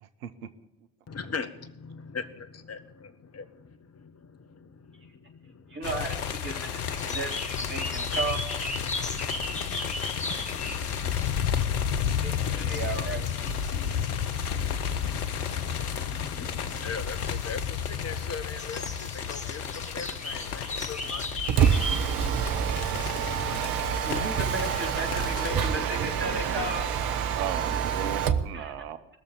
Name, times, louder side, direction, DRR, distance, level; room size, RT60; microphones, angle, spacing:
voice 1, 0.0-0.7 9.3-9.7 12.1-12.8 13.1-13.2 27.4-29.1, right 9 dB, 75° right, 11 dB, 0.8 m, -38 dB
voice 2, 1.1-5.8 9.1-9.9 10.2-21.4, left 5 dB, 35° left, 10 dB, 1.4 m, -41 dB
voice 3, 5.7-8.5 12.2-12.4 12.7-13.2 24.0-26.9 28.5-28.7, right 2 dB, 25° right, 0 dB, 3.8 m, -34 dB
sound 1, 5.8-25.8, left 8 dB, 80° left, 0.7 m, -32 dB
sound 2, 7.0-26.7, left 1 dB, 15° left, 2.0 m, -39 dB
Mechanisms, 21.2-28.5, right 8 dB, 50° right, 1.0 m, -27 dB
20.5 x 7.0 x 8.5 m, 0.94 s
figure-of-eight pair, 45°, 44 cm